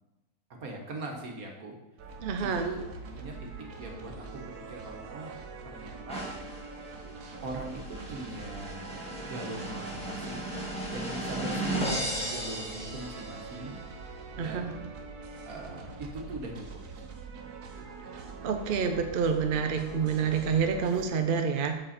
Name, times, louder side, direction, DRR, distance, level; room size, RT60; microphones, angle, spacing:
voice 1, 0.6-1.8 2.6-2.8 3.1-3.5 3.8-5.4 5.6-6.3 7.4-10.5 10.9-13.8 14.3-14.9 15.5-16.7 17.0-17.1, right 2 dB, 70° right, 1 dB, 1.8 m, -41 dB
sound 1, 2.0-21.1, right 4 dB, 85° right, 1.4 m, -44 dB
voice 2, 2.2-2.6 14.4-14.7 18.4-21.8, right 6 dB, 50° right, 5 dB, 0.7 m, -28 dB
sound 2, 6.1-13.7, right 1 dB, 5° left, 1.8 m, -36 dB
7.8 x 6.3 x 4.3 m, 1.0 s
omnidirectional pair, 1.6 m